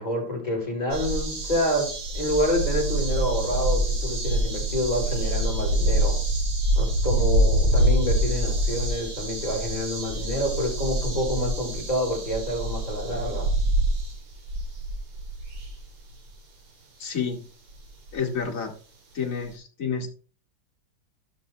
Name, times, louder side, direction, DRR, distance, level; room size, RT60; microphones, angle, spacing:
voice 1, 0.0-6.2 6.8-13.5, left 1 dB, 20° left, -2 dB, 4.9 m, -28 dB
sound 1, 0.9-16.1 17.7-17.8 18.1-18.2, right 1 dB, 80° right, 3.0 m, -25 dB
voice 2, 17.0-17.5 18.1-18.7 19.1-20.1, left 6 dB, 40° left, 2 dB, 2.0 m, -29 dB
15.5 x 6.3 x 3.2 m, 0.41 s
omnidirectional pair, 2.3 m